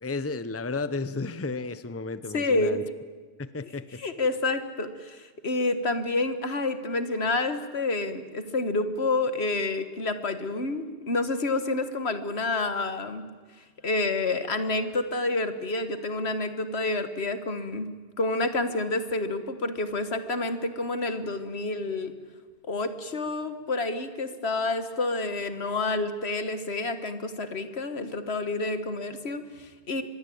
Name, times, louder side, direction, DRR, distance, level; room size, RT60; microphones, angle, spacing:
voice 1, 0.0-2.8 3.4-4.0, left 3 dB, 15° left, 14 dB, 0.7 m, -33 dB
voice 2, 2.3-2.8 4.0-13.2 13.8-17.9 18.2-22.1 22.7-30.0, left 2 dB, 70° left, 10 dB, 1.8 m, -29 dB
24.5 x 21.5 x 8.7 m, 1.4 s
omnidirectional pair, 1.1 m